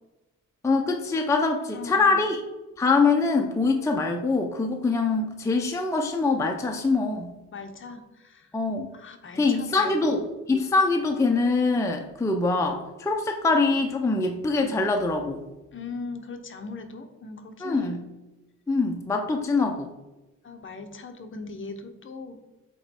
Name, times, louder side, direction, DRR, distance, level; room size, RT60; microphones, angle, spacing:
voice 1, 0.6-2.4 2.8-7.3 8.5-8.9 9.4-15.4 17.6-18.0 18.7-19.9, left 3 dB, 10° left, 2 dB, 0.4 m, -24 dB
voice 2, 1.7-2.3 7.5-8.6 8.9-10.2 15.7-18.0 20.4-22.4, left 3 dB, 40° left, 6 dB, 0.8 m, -39 dB
8.0 x 3.0 x 4.2 m, 1.1 s
wide cardioid pair, 155°, 32 cm